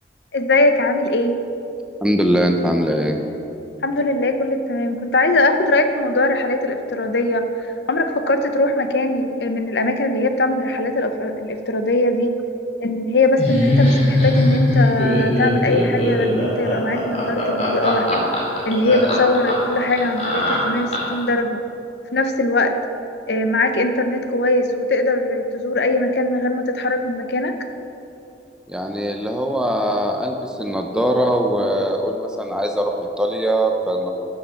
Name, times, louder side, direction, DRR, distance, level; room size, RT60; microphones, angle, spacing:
voice 1, 0.3-1.4 3.8-7.5 7.9-12.3 12.8-18.1 18.6-21.6 22.1-22.7 23.3-27.5, left 2 dB, 70° left, 7 dB, 0.7 m, -20 dB
voice 2, 2.0-3.2 28.7-34.1, equal, 5° right, 3 dB, 0.6 m, -21 dB
Laughter, 13.4-21.2, left 1 dB, 35° left, 2.3 m, -20 dB
12.5 x 6.4 x 5.7 m, 2.8 s
head